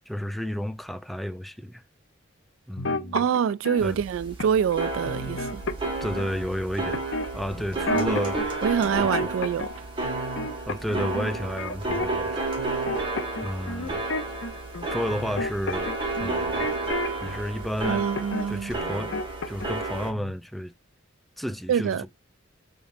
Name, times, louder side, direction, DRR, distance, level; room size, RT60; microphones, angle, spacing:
voice 1, 0.1-1.8 2.7-3.2 3.8-4.0 6.0-7.1 7.3-8.5 9.0-9.3 10.7-12.5 13.4-14.0 14.9-15.9 16.2-16.7 17.2-18.1 18.5-19.1 19.5-20.7 21.4-22.1, equal, ahead, 0.4 m, -32 dB
sound 1, 2.8-3.8 4.4-4.7 5.0-6.3 6.9-8.5 8.8-9.8 10.0-12.3 12.6-17.4 17.8-18.5 18.8-19.8 20.1-20.3, left 2 dB, 70° left, 0.7 m, -32 dB
voice 2, 3.1-5.6 7.9-8.2 8.6-10.1 17.9-18.7 21.7-22.0, right 7 dB, 85° right, 0.3 m, -26 dB
sound 2, 3.8-20.1, right 3 dB, 25° right, 1.8 m, -31 dB
4.8 x 3.6 x 2.6 m
head